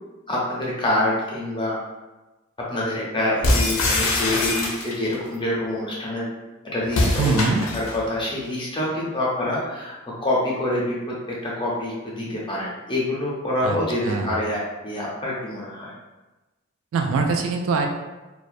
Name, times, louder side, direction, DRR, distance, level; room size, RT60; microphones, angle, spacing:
voice 1, 0.3-1.8 2.7-6.3 6.6-7.5 7.7-11.0 11.4-14.6 14.8-15.9, left 1 dB, 25° left, -5 dB, 0.5 m, -26 dB
sound 1, 3.4-5.1 6.9-8.0, left 2 dB, 80° left, 0.5 m, -23 dB
voice 2, 7.2-7.6 13.6-13.8 14.0-14.4 16.9-17.9, right 4 dB, 65° right, 3 dB, 0.3 m, -23 dB
2.4 x 2.1 x 2.5 m, 1.1 s
head